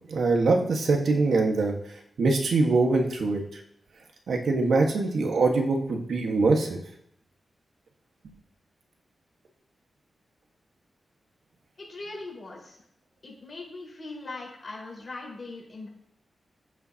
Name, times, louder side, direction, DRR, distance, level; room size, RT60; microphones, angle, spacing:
voice 1, 0.1-1.7 2.2-3.6 4.3-6.8, right 3 dB, 80° right, 2 dB, 1.5 m, -23 dB
voice 2, 11.8-12.8 13.2-15.9, left 3 dB, 45° left, -3 dB, 4.7 m, -40 dB
14.0 x 8.8 x 2.9 m, 0.74 s
wide cardioid pair, 90°, 0 cm